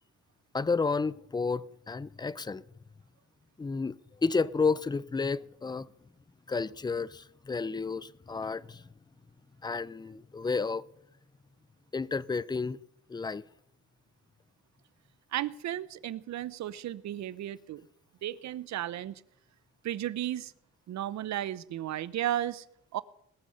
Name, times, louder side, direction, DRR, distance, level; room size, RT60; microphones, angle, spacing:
voice 1, 0.5-2.6 3.6-5.9 6.5-8.8 9.6-10.8 11.9-12.8 13.1-13.4, left 4 dB, 15° left, 0.4 m, -31 dB
voice 2, 15.3-17.8 18.2-19.2 19.8-20.5 20.9-22.7 22.9-23.0, right 12 dB, 65° right, 0.7 m, -34 dB
20.0 x 7.0 x 6.4 m
cardioid pair, 90°, 30 cm